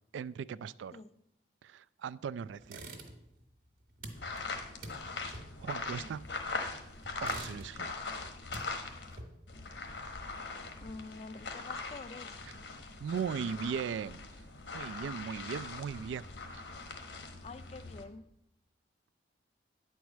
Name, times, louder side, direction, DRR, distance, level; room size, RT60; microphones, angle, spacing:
voice 1, 0.1-0.9 1.6-2.8 5.6-6.2 7.2-7.9 13.0-14.3 14.7-16.3 16.5-16.6, right 6 dB, 85° right, 18 dB, 0.3 m, -38 dB
sound 1, 2.6-3.4 3.7-6.6 7.0-8.0 8.3-9.6, right 2 dB, 45° right, 1.3 m, -47 dB
Footsteps on Sand, 4.1-9.2 9.5-18.0, left 3 dB, 75° left, 1.1 m, -41 dB
voice 2, 10.8-12.4 17.4-18.3, left 3 dB, 35° left, 13 dB, 0.4 m, -47 dB
9.2 x 4.7 x 7.2 m, 0.82 s
head